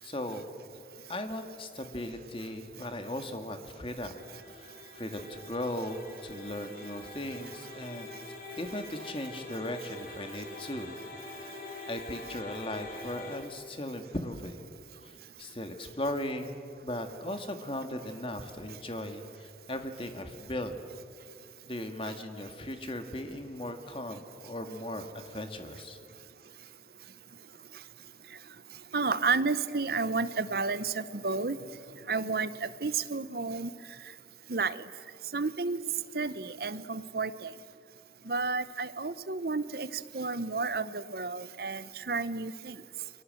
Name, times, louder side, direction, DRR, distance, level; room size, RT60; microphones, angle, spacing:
voice 1, 0.0-0.5 1.1-11.0 11.4-11.6 11.9-14.6 15.0-20.8 21.6-26.0, left 1 dB, 30° left, 7 dB, 1.9 m, -38 dB
sound 1, 4.1-13.4, left 3 dB, 50° left, 5.4 m, -45 dB
voice 2, 28.9-31.6 32.1-33.7 34.5-34.9 35.3-35.8 36.1-37.5 38.2-42.8, right 4 dB, 55° right, 15 dB, 0.8 m, -31 dB
30.0 x 23.0 x 7.7 m, 2.3 s
head